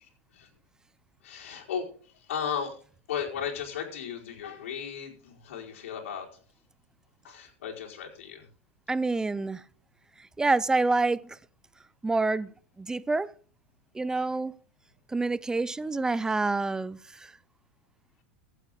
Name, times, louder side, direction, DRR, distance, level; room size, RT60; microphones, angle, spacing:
voice 1, 1.2-2.8 3.1-6.3 7.2-8.5, left 7 dB, 85° left, 4.8 m, -35 dB
voice 2, 8.9-9.6 10.4-11.4 12.0-12.5 12.8-13.3 13.9-14.6 15.1-17.0, right 3 dB, 10° right, 0.6 m, -27 dB
15.5 x 9.3 x 3.7 m
supercardioid pair, 125°, 7 cm